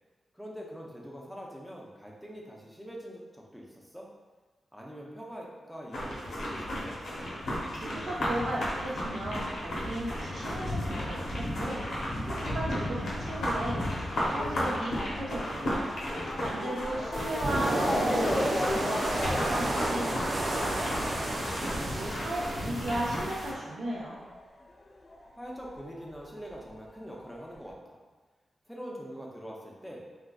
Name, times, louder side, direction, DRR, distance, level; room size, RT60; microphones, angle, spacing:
voice 1, 0.3-4.1 4.7-7.0 22.2-22.7 25.4-28.0 28.7-30.1, equal, ahead, -3 dB, 0.6 m, -44 dB
sound 1, 5.9-23.5, equal, 85° left, 0.8 m, -34 dB
voice 2, 7.7-13.8 14.1-15.8 16.4-20.9 21.7-24.2, right 1 dB, 75° right, -5 dB, 0.9 m, -36 dB
Motor vehicle (road) / Siren, 12.3-25.3 25.5-26.7 27.4-27.5 27.7-27.8, left 2 dB, 40° left, 0.3 m, -37 dB
sound 2, 17.1-23.5, right 2 dB, 45° right, 0.4 m, -32 dB
3.6 x 2.5 x 2.3 m, 1.3 s
cardioid pair, 70°, 0 cm